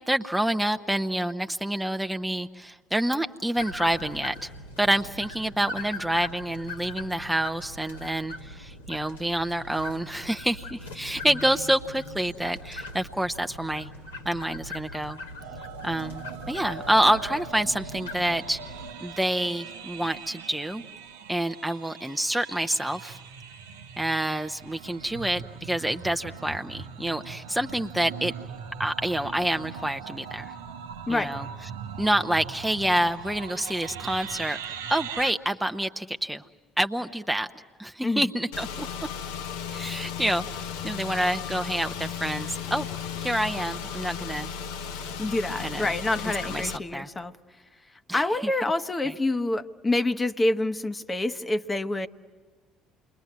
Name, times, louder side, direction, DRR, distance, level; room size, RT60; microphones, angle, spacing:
voice 1, 0.0-4.5 4.8-13.9 14.2-15.2 15.8-18.6 19.0-20.8 21.3-23.2 24.0-28.3 28.8-30.5 31.1-31.5 32.0-36.4 36.8-37.5 37.8-38.9 39.7-40.5 40.8-42.9 43.2-44.5 45.6-45.9 46.5-47.1 48.1-48.2, right 1 dB, 5° right, 6 dB, 0.8 m, -27 dB
sound 1, 3.5-18.9, left 2 dB, 90° left, 2.3 m, -41 dB
sound 2, 15.4-35.3, right 7 dB, 80° right, 0.9 m, -41 dB
Car / Engine, 38.5-46.8, left 7 dB, 75° left, 1.0 m, -35 dB
voice 2, 45.2-47.3 48.1-52.1, left 2 dB, 20° left, 9 dB, 1.0 m, -27 dB
28.5 x 22.0 x 9.5 m, 1.4 s
figure-of-eight pair, 55°, 0 cm